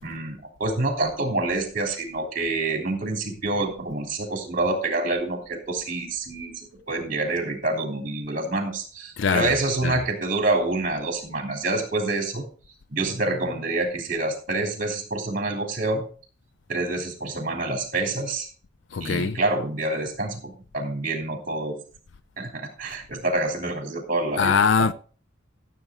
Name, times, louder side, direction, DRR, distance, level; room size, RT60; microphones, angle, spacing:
voice 1, 0.0-6.5 6.9-12.4 12.9-16.1 16.7-18.5 19.0-21.7 22.4-24.9, right 2 dB, 45° right, 3.3 m, -27 dB
voice 2, 9.2-9.5 9.8-9.9 18.9-19.4 24.4-24.9, left 5 dB, 60° left, 0.4 m, -22 dB
14.5 x 7.7 x 3.8 m
head